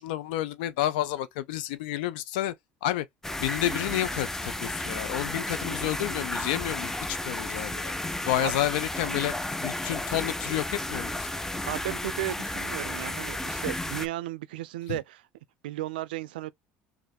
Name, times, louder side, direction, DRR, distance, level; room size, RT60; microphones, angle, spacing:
voice 1, 0.0-2.5 2.8-3.1 3.4-7.9 8.3-9.3 9.6-11.3 14.9-15.0, left 13 dB, 80° left, 0.5 m, -30 dB
sound 1, 3.2-14.1, left 1 dB, 10° left, 0.5 m, -33 dB
voice 2, 11.7-15.2 15.6-16.5, right 15 dB, 90° right, 0.3 m, -34 dB
3.2 x 2.4 x 4.1 m
supercardioid pair, 80°, 5 cm